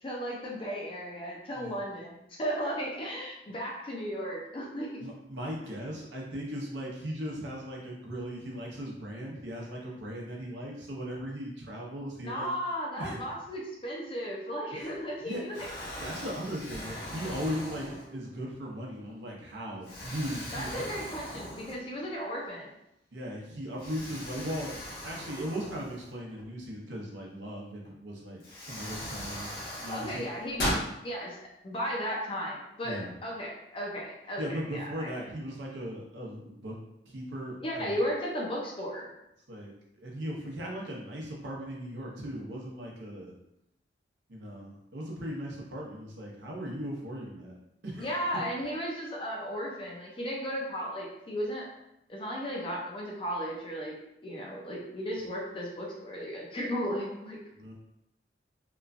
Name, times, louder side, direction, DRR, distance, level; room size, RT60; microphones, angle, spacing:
voice 1, 0.0-5.0 12.2-16.1 20.5-22.7 29.9-30.6 31.0-31.4 31.6-35.1 37.6-39.1 48.0-51.7 52.1-53.9 54.2-57.4, equal, 30° left, -2 dB, 0.5 m, -35 dB
voice 2, 5.0-12.5 13.0-13.2 14.7-14.9 15.2-15.4 16.0-20.8 23.1-24.7 25.0-29.5 29.8-30.3 32.8-33.2 34.4-36.8 37.1-37.9 39.5-39.7 40.0-43.3 44.3-47.6 47.8-48.1 57.5-57.7, equal, 90° right, -2 dB, 0.7 m, -38 dB
Explosion, 14.8-15.2 15.5-18.4 19.0-19.1 19.8-22.1 22.4-22.5 23.8-26.4 27.8-27.9 28.4-30.9, equal, 60° left, 1.0 m, -38 dB
3.0 x 2.2 x 2.4 m, 0.83 s
head